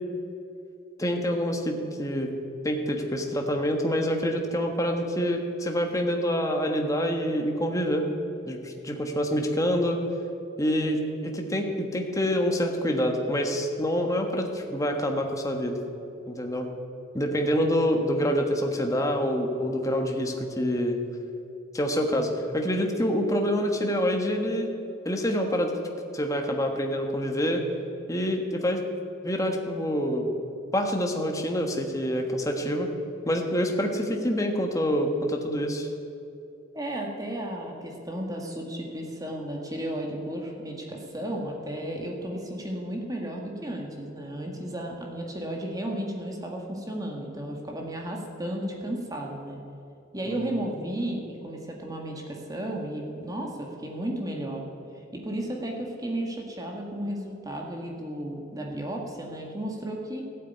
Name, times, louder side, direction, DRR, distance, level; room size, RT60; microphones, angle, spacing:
voice 1, 1.0-2.3 2.6-8.0 8.5-10.0 10.6-15.8 16.3-16.7 17.1-21.0 21.7-24.7 25.0-25.7 26.1-27.6 28.1-28.8 29.2-30.3 30.7-32.9 33.3-35.9 50.2-50.4, equal, 15° left, 3 dB, 1.3 m, -26 dB
voice 2, 36.7-49.6 50.1-54.6 55.1-60.2, right 1 dB, 20° right, 0 dB, 1.8 m, -33 dB
14.5 x 8.5 x 9.4 m, 2.7 s
head